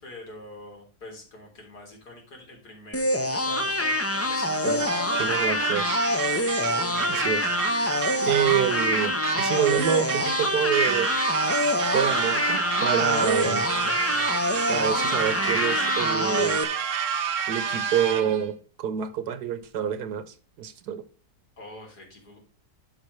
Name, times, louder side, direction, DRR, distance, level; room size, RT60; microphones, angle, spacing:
voice 1, 0.0-4.5 21.6-22.4, left 2 dB, 75° left, 4.0 m, -45 dB
sound 1, 2.9-16.6, left 1 dB, 20° left, 0.4 m, -26 dB
sound 2, 4.8-18.5, right 8 dB, 55° right, 1.1 m, -29 dB
voice 2, 5.2-6.0 7.1-7.5 8.2-11.1 11.9-13.7 14.7-16.6 17.5-20.2 20.6-21.0, right 9 dB, 75° right, 1.5 m, -27 dB
12.0 x 5.8 x 3.1 m
omnidirectional pair, 1.7 m